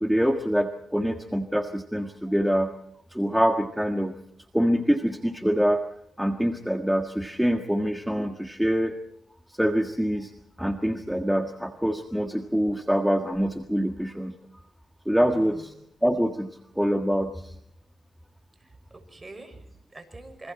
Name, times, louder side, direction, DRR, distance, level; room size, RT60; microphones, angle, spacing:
voice 1, 0.0-2.7 3.1-4.1 4.5-5.8 6.2-8.9 9.5-10.3 10.6-14.3 15.0-15.7 16.0-16.5 16.8-17.5, equal, ahead, 6 dB, 1.7 m, -25 dB
voice 2, 15.3-15.8 18.6-20.5, right 2 dB, 25° right, 8 dB, 5.9 m, -45 dB
27.5 x 25.5 x 4.4 m, 0.72 s
cardioid pair, 65°, 0 cm